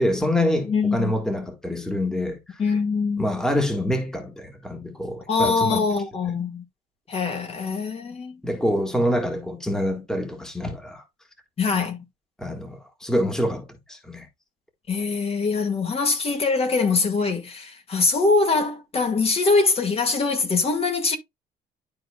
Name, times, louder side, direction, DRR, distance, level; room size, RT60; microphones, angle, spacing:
voice 1, 0.0-2.6 3.2-5.9 8.4-11.0 12.4-14.3, equal, 5° left, 1.7 m, -26 dB
voice 2, 0.6-1.1 2.6-3.3 5.3-6.6 7.1-8.4 11.6-12.0 14.9-21.2, left 4 dB, 35° left, 1.9 m, -23 dB
11.5 x 4.0 x 2.3 m
cardioid pair, 110°, 17 cm